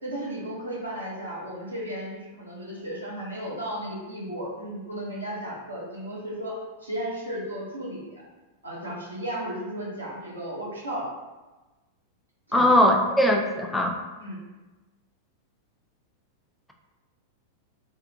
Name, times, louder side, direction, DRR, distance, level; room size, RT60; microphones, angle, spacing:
voice 1, 0.0-6.5 6.8-8.0 8.6-11.0 12.5-12.7 14.2-14.4, right 1 dB, 85° right, -5 dB, 0.9 m, -34 dB
voice 2, 12.5-13.9, left 1 dB, 5° left, 2 dB, 0.4 m, -20 dB
3.5 x 2.2 x 2.6 m, 1.2 s
figure-of-eight pair, 95°, 0 cm